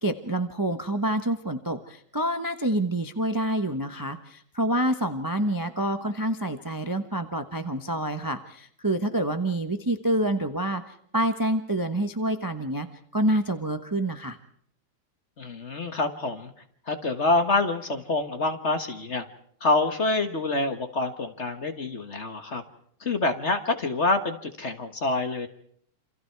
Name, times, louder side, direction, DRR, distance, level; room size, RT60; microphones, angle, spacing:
voice 1, 0.0-12.9 13.1-14.4, right 1 dB, 15° right, 8 dB, 0.7 m, -27 dB
voice 2, 15.4-16.5 16.9-19.2 19.6-22.6 23.0-25.5, left 2 dB, 35° left, 8 dB, 1.5 m, -26 dB
28.5 x 26.5 x 4.7 m, 0.66 s
omnidirectional pair, 2.3 m